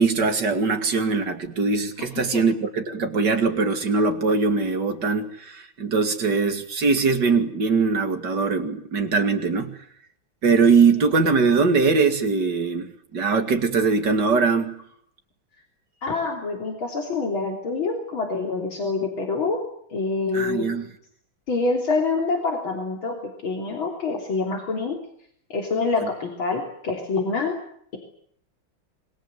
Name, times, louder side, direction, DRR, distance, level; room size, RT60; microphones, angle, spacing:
voice 1, 0.0-9.8 10.4-14.8 20.3-20.9 26.0-26.1, right 4 dB, 55° right, 6 dB, 2.9 m, -21 dB
voice 2, 16.0-19.6 19.9-20.7 21.5-23.1 23.4-25.0 25.5-27.6, left 3 dB, 75° left, 1 dB, 4.2 m, -26 dB
26.5 x 22.0 x 8.1 m, 0.67 s
omnidirectional pair, 2.3 m